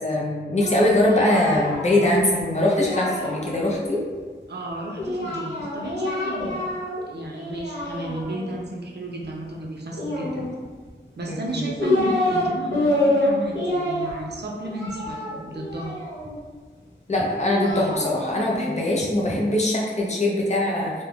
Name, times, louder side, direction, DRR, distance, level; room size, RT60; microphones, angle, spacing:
voice 1, 0.0-4.0 11.3-11.7 17.1-20.9, left 1 dB, 35° left, -3 dB, 0.5 m, -22 dB
Singing, 0.6-3.8 5.0-7.0 7.3-8.5 9.9-10.9 11.5-12.5 12.7-16.4 17.2-19.4, left 1 dB, 75° left, 0.9 m, -27 dB
voice 2, 4.5-6.7 7.1-10.4 11.2-16.0, right 1 dB, 60° right, -1 dB, 0.5 m, -33 dB
2.3 x 2.0 x 3.3 m, 1.5 s
wide cardioid pair, 85°, 19 cm